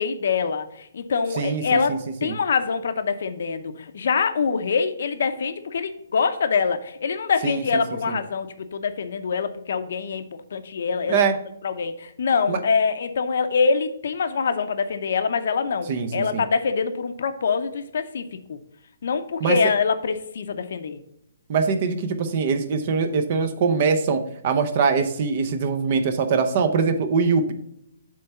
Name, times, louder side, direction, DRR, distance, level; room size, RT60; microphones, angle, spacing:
voice 1, 0.0-10.2 10.5-11.2 11.6-18.2 18.5-18.6 19.0-21.0, left 5 dB, 55° left, 9 dB, 0.7 m, -24 dB
voice 2, 1.4-2.3 7.4-7.6 8.1-8.2 11.1-11.3 12.5-12.6 15.9-16.4 19.4-19.6 21.5-27.5, right 5 dB, 35° right, 8 dB, 0.7 m, -23 dB
7.6 x 3.4 x 5.5 m, 0.77 s
hypercardioid pair, 170°, 0 cm